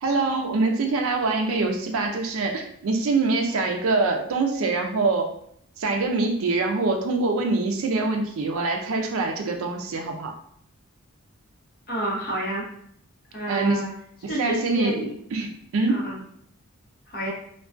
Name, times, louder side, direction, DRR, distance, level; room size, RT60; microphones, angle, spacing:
voice 1, 0.0-5.3 5.8-10.3 13.5-13.8 14.2-15.0 15.3-16.1, right 3 dB, 70° right, 3 dB, 0.4 m, -24 dB
voice 2, 11.9-12.6 13.3-13.9 14.3-15.1 15.9-16.2 17.1-17.3, right 1 dB, 45° left, -4 dB, 0.8 m, -29 dB
2.3 x 2.2 x 2.4 m, 0.67 s
head